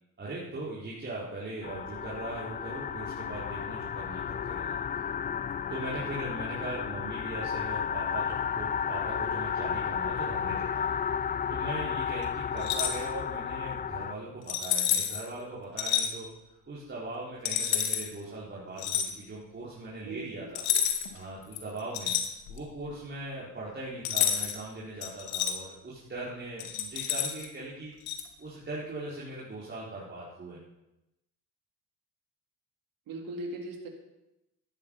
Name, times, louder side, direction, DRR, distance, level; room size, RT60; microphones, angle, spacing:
voice 1, 0.2-4.8 5.7-10.9 11.5-16.3 16.7-20.6 21.1-22.1 22.5-27.9 28.4-30.6, right 2 dB, 30° right, -7 dB, 4.9 m, -40 dB
sound 1, 1.6-14.1, left 7 dB, 25° left, 0.4 m, -33 dB
sound 2, 12.6-13.0 14.5-15.2 15.8-16.1 17.4-18.1 18.8-19.1 20.5-21.2 21.5-22.7 24.0-24.6 25.0-25.5 26.6-27.5 28.1-28.2, left 9 dB, 75° left, 2.2 m, -29 dB
voice 2, 20.0-20.5 33.1-33.9, right 2 dB, 65° right, 2 dB, 3.9 m, -38 dB
14.5 x 12.0 x 5.7 m, 0.92 s
supercardioid pair, 75°, 37 cm